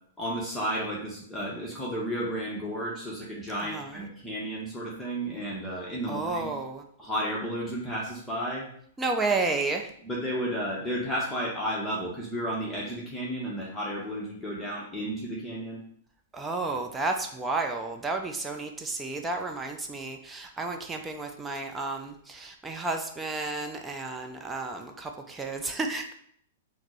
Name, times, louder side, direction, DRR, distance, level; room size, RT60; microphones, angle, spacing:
voice 1, 0.2-6.6 7.0-8.7 10.0-15.8, equal, 10° left, -5 dB, 0.8 m, -32 dB
voice 2, 3.6-4.1 6.1-6.8 9.0-9.9 16.3-26.1, right 3 dB, 15° right, 3 dB, 0.4 m, -32 dB
4.1 x 2.0 x 4.2 m, 0.63 s
figure-of-eight pair, 105°, 0 cm